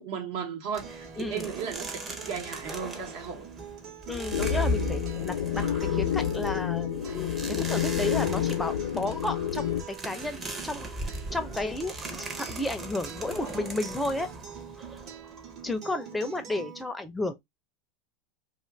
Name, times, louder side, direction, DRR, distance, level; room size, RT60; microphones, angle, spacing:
voice 1, 0.0-3.5, right 7 dB, 65° right, 1.2 m, -35 dB
sound 1, 0.7-15.8, right 1 dB, 25° right, 0.8 m, -38 dB
Acoustic guitar, 0.8-16.8, right 7 dB, 45° right, 1.1 m, -44 dB
voice 2, 1.2-1.5 4.1-10.9 11.3-14.3 15.6-17.4, left 2 dB, 10° left, 0.5 m, -33 dB
sound 2, 4.3-9.8, left 10 dB, 85° left, 0.5 m, -29 dB
2.5 x 2.4 x 3.2 m
hypercardioid pair, 110°, 0 cm